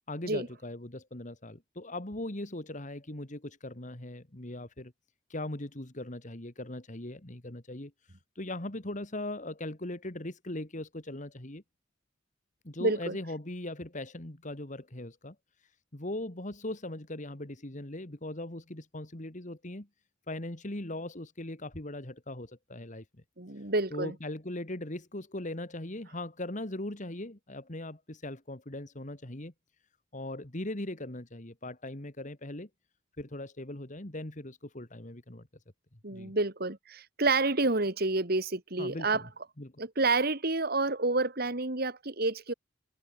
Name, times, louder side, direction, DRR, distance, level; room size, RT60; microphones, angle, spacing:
voice 1, 0.1-4.9 5.3-11.6 12.6-15.4 15.9-19.9 20.3-23.0 23.9-29.5 30.1-32.7 33.2-35.5 36.1-36.3 38.8-39.3 39.6-39.8, left 1 dB, 40° left, 2.4 m, -39 dB
voice 2, 12.8-13.1 23.4-24.1 36.0-39.2 39.8-42.5, right 3 dB, 55° right, 2.6 m, -29 dB
head